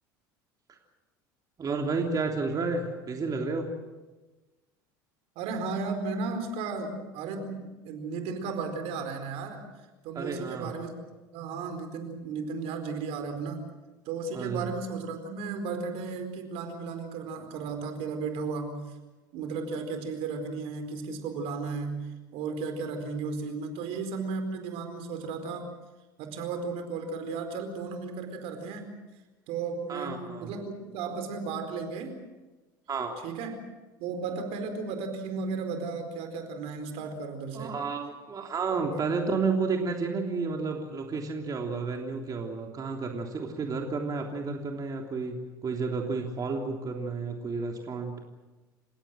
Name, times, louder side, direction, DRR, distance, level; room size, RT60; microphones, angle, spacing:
voice 1, 1.6-3.7 10.1-10.7 14.3-14.7 29.9-30.5 32.9-33.2 37.5-48.1, right 4 dB, 35° right, 2 dB, 3.3 m, -31 dB
voice 2, 5.3-9.6 10.0-10.9 11.3-13.6 14.0-18.9 19.3-25.7 26.2-29.0 29.5-32.2 33.2-33.6 34.0-37.7 38.9-39.2, right 4 dB, 60° right, 7 dB, 4.5 m, -34 dB
29.0 x 17.0 x 7.7 m, 1.2 s
hypercardioid pair, 80°, 11 cm